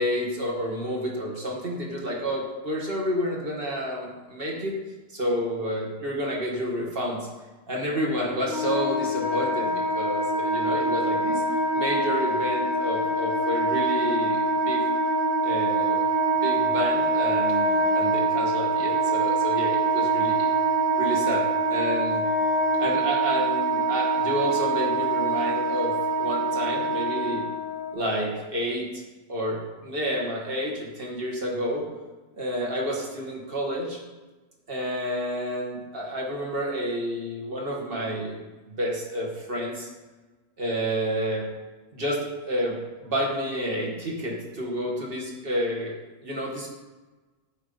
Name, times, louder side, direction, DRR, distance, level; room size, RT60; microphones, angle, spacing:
voice 1, 0.0-4.8 5.1-7.3 7.7-11.4 11.7-14.8 15.4-16.0 16.3-20.5 21.0-22.2 22.8-27.4 27.9-29.0 29.3-31.8 32.3-34.0 34.7-38.4 38.7-39.9 40.6-41.5 41.9-45.9 46.2-46.7, equal, 45° right, -2 dB, 1.4 m, -30 dB
Wind instrument woodwind instrument, 8.4-27.9, right 2 dB, 65° right, 2.5 m, -24 dB
8.0 x 3.6 x 5.3 m, 1.2 s
omnidirectional pair, 1.4 m